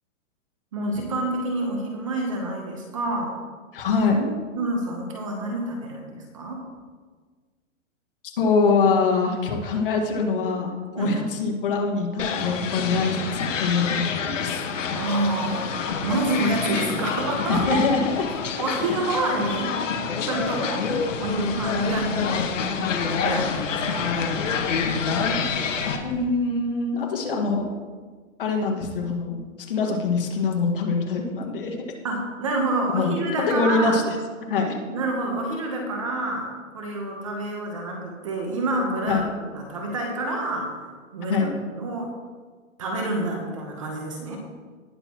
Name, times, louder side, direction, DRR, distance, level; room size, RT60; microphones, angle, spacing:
voice 1, 0.7-3.3 4.5-6.6 11.0-11.1 14.9-15.8 16.0-17.8 18.6-19.8 20.3-20.9 21.2-22.4 23.1-24.1 32.0-34.0 34.9-40.7 41.1-41.5 41.8-42.1 42.8-44.4, right 2 dB, 25° right, 1 dB, 1.0 m, -27 dB
voice 2, 3.7-4.3 8.4-13.2 13.6-14.6 17.5-18.3 26.0-27.6 28.4-29.4 29.7-31.8 32.9-33.1 33.5-34.2 34.5-35.0 39.1-39.2 41.3-41.5, left 4 dB, 40° left, 1 dB, 1.9 m, -24 dB
sound 1, 12.2-26.0, left 6 dB, 65° left, 1.6 m, -27 dB
sound 2, 20.8-26.2, right 2 dB, 45° right, 2.3 m, -39 dB
19.0 x 6.7 x 3.0 m, 1.5 s
hypercardioid pair, 175°, 40 cm